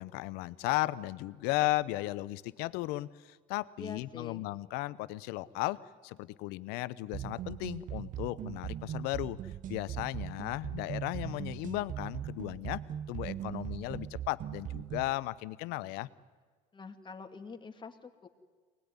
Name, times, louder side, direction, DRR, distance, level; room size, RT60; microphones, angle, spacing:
voice 1, 0.0-12.8 13.1-16.1, left 18 dB, 70° left, 17 dB, 0.9 m, -35 dB
voice 2, 3.8-4.5 16.7-18.3, left 5 dB, 30° left, 5 dB, 2.5 m, -45 dB
sound 1, 7.1-15.2, right 11 dB, 50° right, 0.8 m, -40 dB
23.5 x 20.0 x 9.8 m, 1.5 s
hypercardioid pair, 75°, 17 cm